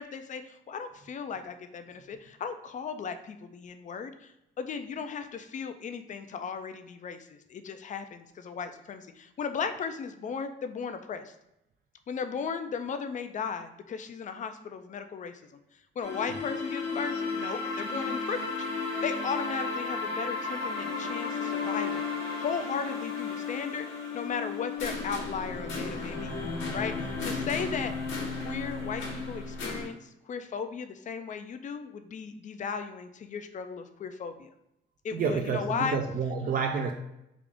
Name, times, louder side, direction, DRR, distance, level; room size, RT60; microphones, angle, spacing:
voice 1, 0.0-4.3 4.6-11.3 12.1-15.4 16.0-18.7 19.0-22.1 22.4-23.9 24.1-26.3 26.7-27.9 28.4-34.5 35.0-36.0, left 6 dB, 40° left, 9 dB, 0.4 m, -36 dB
sound 1, 16.0-29.8, left 4 dB, 75° left, 1.0 m, -34 dB
voice 2, 35.1-36.9, right 5 dB, 45° right, 3 dB, 0.4 m, -29 dB
3.5 x 2.4 x 3.5 m, 0.85 s
cardioid pair, 90°, 20 cm